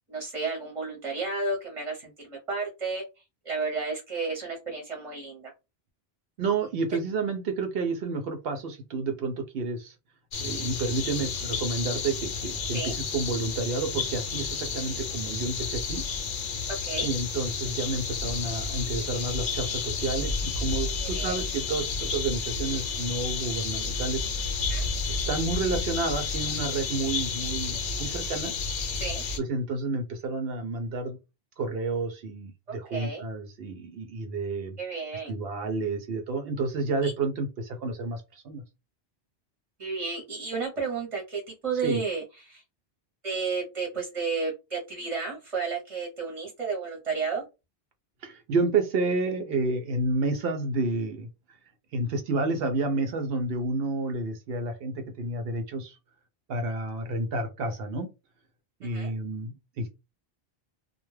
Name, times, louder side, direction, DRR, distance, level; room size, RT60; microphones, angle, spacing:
voice 1, 0.1-3.0 3.4-5.5 12.7-12.9 16.8-17.1 21.0-21.4 24.7-24.9 29.0-29.2 32.7-33.2 34.8-35.3 37.0-37.1 39.8-42.6 43.2-47.4 58.8-59.1, right 4 dB, 35° right, -2 dB, 0.8 m, -32 dB
voice 2, 6.4-9.9 10.4-16.0 17.0-24.5 25.1-28.5 29.4-31.2 31.6-34.8 35.3-38.6 41.8-42.0 48.2-51.3 51.9-56.0 56.5-58.1 58.8-59.9, right 3 dB, 70° right, 5 dB, 0.7 m, -30 dB
sound 1, 10.3-29.4, left 5 dB, 65° left, 0.8 m, -31 dB
2.2 x 2.1 x 3.1 m, 0.25 s
omnidirectional pair, 1.1 m